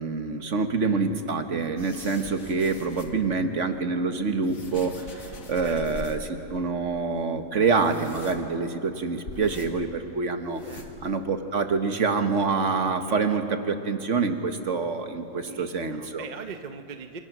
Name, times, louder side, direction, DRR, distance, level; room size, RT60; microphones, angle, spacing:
voice 1, 0.0-10.6 11.0-16.2, right 4 dB, 55° right, 7 dB, 1.6 m, -26 dB
sound 1, 1.8-3.3 4.0-6.4 6.7-6.8 7.0-7.2 7.6-8.8 9.3-10.0 10.4-11.3 11.6-11.7 12.3-12.4 12.6-12.8, left 2 dB, 65° left, 2.3 m, -42 dB
voice 2, 15.5-17.2, right 5 dB, 35° right, 7 dB, 0.8 m, -40 dB
27.0 x 27.0 x 6.2 m, 2.9 s
omnidirectional pair, 1.5 m